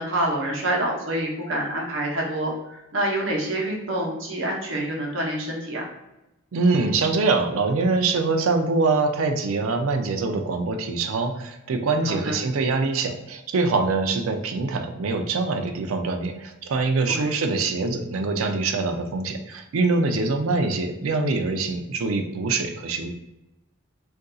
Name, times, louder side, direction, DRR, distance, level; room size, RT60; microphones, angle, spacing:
voice 1, 0.0-5.9 12.1-12.4 17.1-17.4, right 1 dB, 70° right, -1 dB, 0.8 m, -27 dB
voice 2, 6.5-23.1, right 3 dB, 90° right, 6 dB, 0.4 m, -24 dB
2.5 x 2.3 x 3.8 m, 0.94 s
head